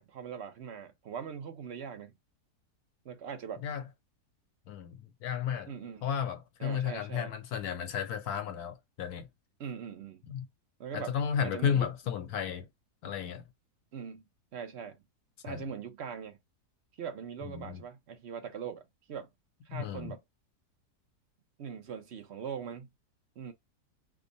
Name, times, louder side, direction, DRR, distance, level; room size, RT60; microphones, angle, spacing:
voice 1, 0.0-2.2 3.0-3.6 5.7-6.1 6.6-7.3 9.6-10.2 10.8-11.1 11.4-11.9 13.9-14.2 14.5-15.0 15.4-16.4 17.0-18.8 19.1-19.3 19.7-20.2 21.6-22.9 23.4-23.5, right 7 dB, 60° right, 0.7 m, -41 dB
voice 2, 4.7-5.7 6.0-9.3 10.3-10.5 10.9-12.7 13.0-13.4 15.5-15.6 17.4-17.8 19.7-20.2, left 8 dB, 70° left, 1.2 m, -33 dB
3.6 x 2.1 x 3.8 m
omnidirectional pair, 1.7 m